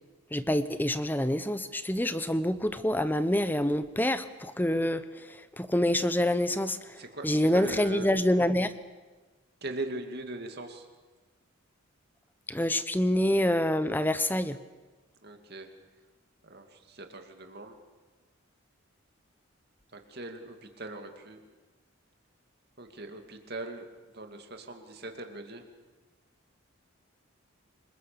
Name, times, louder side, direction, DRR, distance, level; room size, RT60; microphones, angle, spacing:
voice 1, 0.3-8.7 12.5-14.6, left 1 dB, 10° left, 13 dB, 0.8 m, -27 dB
voice 2, 7.0-8.1 9.6-10.9 15.2-15.7 16.4-17.7 19.9-21.4 22.8-23.9 24.1-25.6, right 2 dB, 50° right, 5 dB, 2.5 m, -40 dB
28.5 x 21.0 x 6.9 m, 1.3 s
head